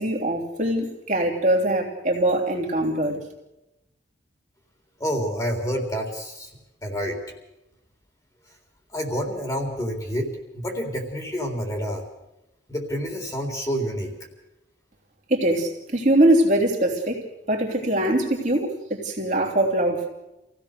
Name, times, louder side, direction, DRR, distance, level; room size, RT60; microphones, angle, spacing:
voice 1, 0.0-3.2 15.3-20.1, right 1 dB, 40° right, -1 dB, 3.2 m, -22 dB
voice 2, 5.0-6.5 6.8-7.2 8.9-12.0 12.7-14.1, equal, 20° left, 2 dB, 3.8 m, -28 dB
27.0 x 16.5 x 6.7 m, 0.94 s
head